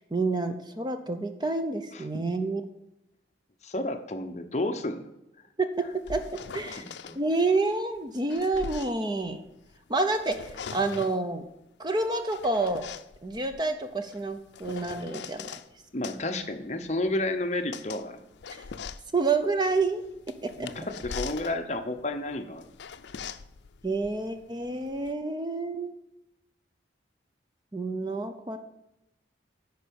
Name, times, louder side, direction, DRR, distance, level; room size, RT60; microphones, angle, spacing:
voice 1, 0.1-2.6 5.6-6.2 6.5-6.8 7.1-9.4 9.9-11.5 11.8-12.9 13.2-15.5 18.5-18.6 19.1-20.0 20.4-20.7 23.8-25.9 27.7-28.6, right 3 dB, 25° right, 8 dB, 0.6 m, -28 dB
voice 2, 3.6-5.1 6.7-7.2 15.9-18.2 20.6-22.7, left 2 dB, 40° left, 7 dB, 0.8 m, -31 dB
sound 1, 5.8-7.2 8.0-9.8 10.1-11.3 12.0-15.7 16.0-25.1, left 6 dB, 75° left, 0.5 m, -42 dB
10.0 x 4.5 x 7.0 m, 0.89 s
head